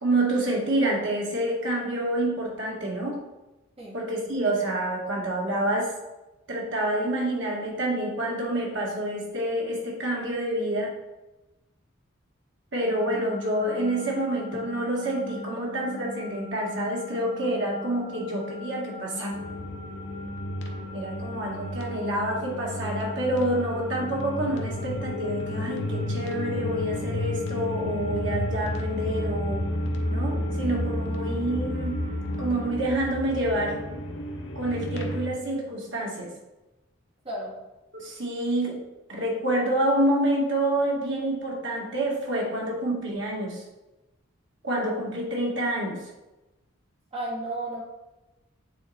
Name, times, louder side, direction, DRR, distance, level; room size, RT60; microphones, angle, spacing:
voice 1, 0.0-3.2 3.9-5.9 6.5-10.9 12.7-19.4 20.9-29.7 30.1-32.0 32.4-33.8 34.6-36.3 37.9-38.8 39.1-43.6 44.6-46.0, right 1 dB, 60° right, -2 dB, 1.9 m, -28 dB
sound 1, 12.9-32.7, left 4 dB, 45° left, 2.3 m, -40 dB
sound 2, 19.3-35.3, left 1 dB, 60° left, 0.9 m, -32 dB
voice 2, 47.1-47.8, right 1 dB, 30° right, -4 dB, 1.5 m, -33 dB
9.1 x 3.9 x 4.3 m, 1.0 s
head